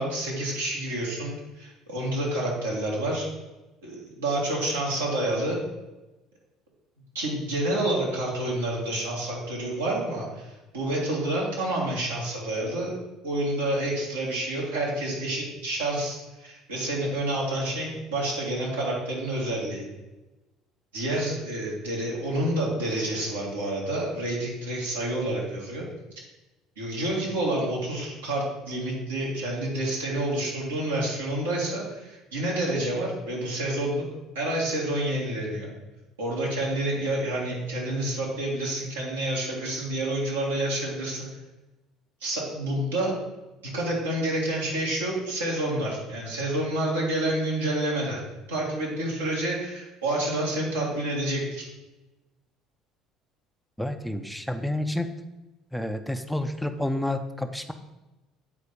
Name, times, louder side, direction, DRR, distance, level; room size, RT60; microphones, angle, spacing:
voice 1, 0.0-3.3 3.8-5.6 7.1-10.5 10.7-12.9 13.2-19.9 20.9-25.8 26.8-34.0 34.3-35.7 36.2-41.3 42.2-43.1 43.6-48.2 48.5-51.6, right 1 dB, 85° right, -5 dB, 2.1 m, -28 dB
voice 2, 53.8-55.1 55.7-57.7, left 1 dB, ahead, 7 dB, 0.7 m, -29 dB
8.3 x 4.2 x 5.2 m, 1.1 s
hypercardioid pair, 60°, 0 cm